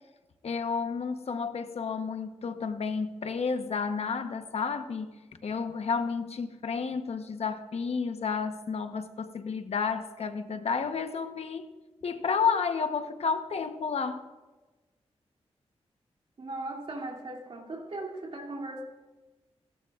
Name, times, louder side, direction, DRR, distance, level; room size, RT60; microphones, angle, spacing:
voice 1, 0.4-11.7 12.0-14.2, left 5 dB, 70° left, 8 dB, 1.0 m, -31 dB
voice 2, 16.4-18.8, right 2 dB, 55° right, -2 dB, 2.8 m, -38 dB
28.5 x 12.5 x 2.5 m, 1.2 s
cardioid pair, 75°, 11 cm